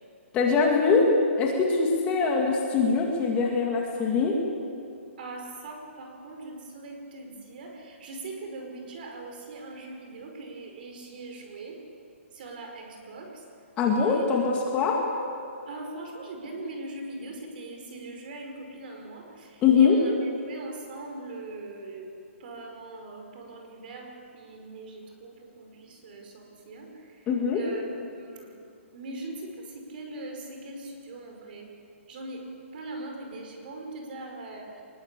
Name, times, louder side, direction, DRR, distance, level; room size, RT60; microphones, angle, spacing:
voice 1, 0.3-1.1 1.4-4.4 13.8-15.0 19.6-20.0 27.3-27.6, left 5 dB, 15° left, 0 dB, 2.5 m, -23 dB
voice 2, 5.2-11.8 12.4-13.3 13.9-14.3 15.7-20.1 20.5-22.1 22.4-26.9 27.5-28.5 28.9-29.4 29.7-31.7 32.1-32.4 32.7-34.7, right 2 dB, 45° right, 3 dB, 5.4 m, -41 dB
24.0 x 21.0 x 8.5 m, 2.4 s
hypercardioid pair, 165°, 7 cm